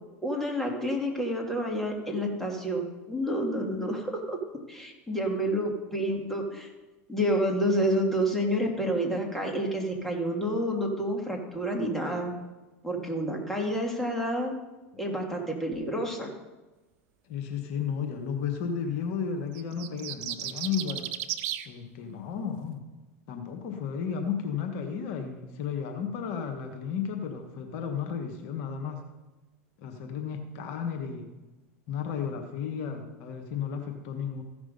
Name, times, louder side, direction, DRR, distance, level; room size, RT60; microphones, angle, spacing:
voice 1, 0.2-4.4 4.7-6.7 7.1-12.3 12.8-14.5 15.0-16.3, equal, 5° left, 0 dB, 2.5 m, -29 dB
voice 2, 17.3-21.1 21.7-22.8 23.3-29.0 29.8-31.3 31.9-34.4, left 7 dB, 60° left, 4 dB, 1.4 m, -33 dB
sound 1, 19.5-21.7, right 12 dB, 55° right, 0.7 m, -34 dB
15.0 x 6.1 x 5.3 m, 1.1 s
hypercardioid pair, 95°, 8 cm